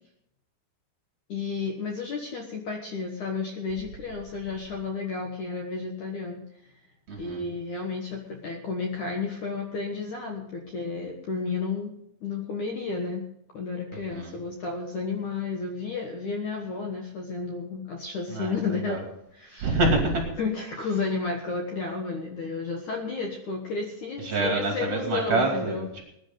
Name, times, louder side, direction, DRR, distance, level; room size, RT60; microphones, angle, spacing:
voice 1, 1.3-6.4 7.2-11.9 12.2-13.2 13.5-19.0 19.4-19.7 20.4-25.9, left 4 dB, 60° left, 2 dB, 2.3 m, -32 dB
voice 2, 7.1-7.4 13.9-14.4 18.3-19.0 19.6-20.3 24.2-26.0, right 2 dB, 40° right, 1 dB, 3.2 m, -27 dB
20.5 x 10.5 x 3.9 m, 0.75 s
omnidirectional pair, 4.9 m